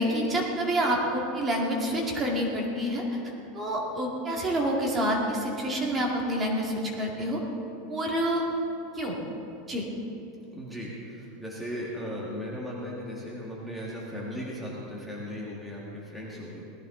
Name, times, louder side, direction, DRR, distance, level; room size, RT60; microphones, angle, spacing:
voice 1, 0.0-3.0 3.5-7.4 7.9-8.5 9.0-9.2 9.7-9.8, equal, 15° right, -2 dB, 2.0 m, -27 dB
voice 2, 10.5-16.6, equal, ahead, -6 dB, 1.7 m, -37 dB
18.5 x 13.5 x 3.8 m, 2.9 s
supercardioid pair, 160°, 0 cm